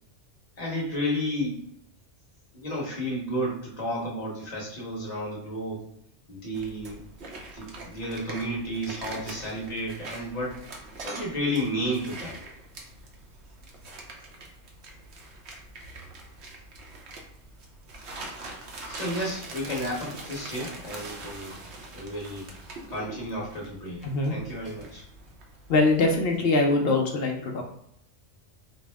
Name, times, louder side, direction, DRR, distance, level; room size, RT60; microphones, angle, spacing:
voice 1, 0.6-1.6 2.5-5.8 6.3-7.0 7.5-10.6 11.0-12.3 18.8-21.6 21.9-22.5 22.9-24.0 24.3-25.0, equal, 35° left, -4 dB, 1.1 m, -32 dB
sound 1, 6.5-26.4, right 2 dB, 65° right, 1.0 m, -43 dB
voice 2, 24.0-24.4 25.7-27.6, left 2 dB, 60° left, 2 dB, 0.7 m, -23 dB
4.2 x 2.0 x 3.4 m, 0.71 s
omnidirectional pair, 1.3 m